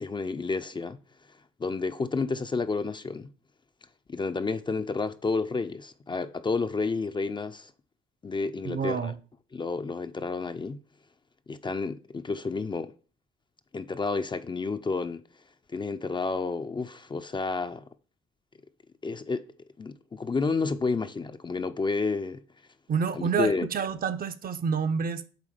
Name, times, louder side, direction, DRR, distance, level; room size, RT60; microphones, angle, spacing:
voice 1, 0.0-1.0 1.6-3.3 4.1-7.7 8.2-9.1 9.5-10.8 11.5-12.9 13.7-15.2 15.7-17.9 19.0-19.5 19.8-22.4 23.1-23.7, left 4 dB, 25° left, 0.4 m, -30 dB
voice 2, 8.6-9.2 22.9-25.3, right 6 dB, 45° right, 0.6 m, -28 dB
8.2 x 3.6 x 5.0 m
cardioid pair, 90°, 20 cm